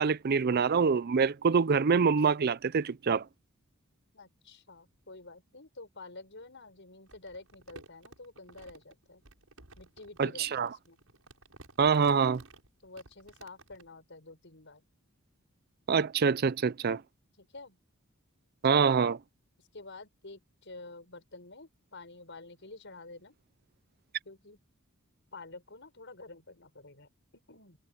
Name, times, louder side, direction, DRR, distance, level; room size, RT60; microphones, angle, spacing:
voice 1, 0.0-3.2 10.2-10.7 11.8-12.4 15.9-17.0 18.6-19.2, right 5 dB, 45° right, 0.5 m, -25 dB
voice 2, 4.1-9.2 9.8-11.0 12.8-14.8 17.4-17.8 19.6-23.4 24.3-24.6 25.3-27.8, left 3 dB, 60° left, 7.2 m, -49 dB
Crumpling crinkling, 7.1-13.9, right 2 dB, 75° right, 7.4 m, -55 dB
head